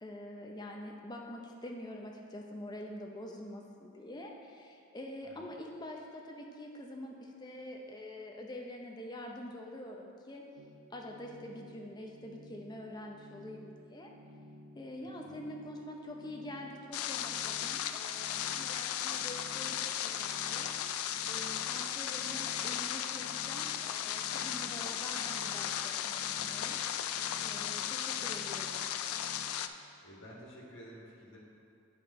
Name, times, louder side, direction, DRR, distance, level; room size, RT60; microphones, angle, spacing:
voice 1, 0.0-10.4 10.9-14.1 14.8-20.7 21.3-26.8 27.4-28.8, left 1 dB, 20° left, 1 dB, 0.5 m, -46 dB
sound 1, 10.6-29.5, equal, 60° right, 0.5 m, -54 dB
voice 2, 15.0-15.4 26.4-26.5 30.0-31.4, equal, 60° left, -4 dB, 1.7 m, -52 dB
sound 2, 16.9-29.7, left 10 dB, 85° left, 0.3 m, -36 dB
9.0 x 5.0 x 4.2 m, 2.5 s
head